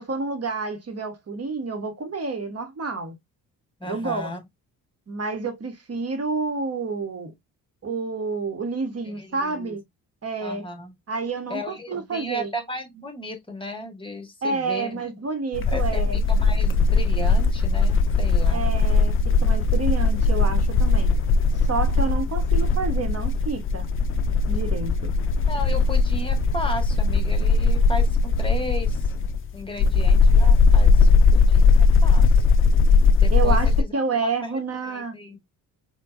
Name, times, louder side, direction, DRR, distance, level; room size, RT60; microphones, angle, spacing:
voice 1, 0.0-3.1 3.9-4.3 5.1-7.3 7.8-9.8 10.2-10.6 11.1-12.5 14.4-16.2 18.5-19.1 19.4-21.1 21.7-23.8 24.5-25.1 33.3-35.1, right 4 dB, 30° right, 1.1 m, -29 dB
voice 2, 3.8-4.4 9.0-9.7 10.4-10.9 11.5-15.0 15.7-18.6 25.5-29.1 29.5-32.4 33.2-33.9 34.2-35.4, left 1 dB, 10° left, 1.4 m, -35 dB
sound 1, 15.5-33.8, left 4 dB, 30° left, 0.4 m, -19 dB
4.3 x 2.3 x 2.5 m
hypercardioid pair, 45°, 49 cm